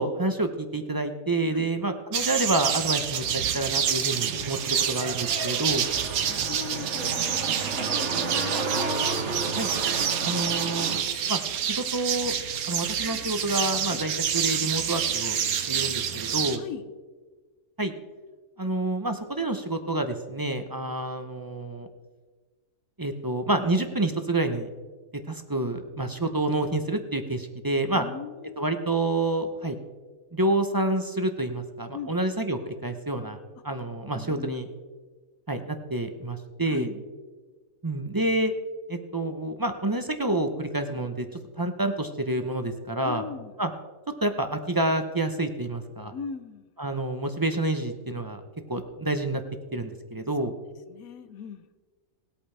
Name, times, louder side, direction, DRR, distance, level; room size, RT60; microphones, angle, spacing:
voice 1, 0.0-5.9 9.6-9.7 10.2-10.9 11.3-12.3 12.7-15.4 15.7-16.6 17.8-17.9 18.6-21.9 23.0-24.7 25.3-28.0 28.6-29.8 30.3-33.4 33.6-34.7 35.5-36.9 37.8-38.5 38.9-41.3 41.6-43.2 43.6-43.7 44.2-46.1 46.8-48.4 48.7-49.4 49.7-50.5, right 2 dB, 20° right, 7 dB, 0.6 m, -28 dB
sound 1, 2.1-16.6, right 8 dB, 80° right, 1.3 m, -28 dB
sound 2, 3.7-11.0, right 3 dB, 55° right, 1.5 m, -33 dB
voice 2, 6.2-8.7 13.9-14.0 16.6-16.8 27.9-28.6 31.9-32.1 34.1-34.6 36.7-37.0 43.0-43.5 46.1-46.7 50.9-51.6, left 7 dB, 75° left, 12 dB, 1.2 m, -39 dB
20.0 x 8.5 x 3.3 m, 1.4 s
omnidirectional pair, 1.5 m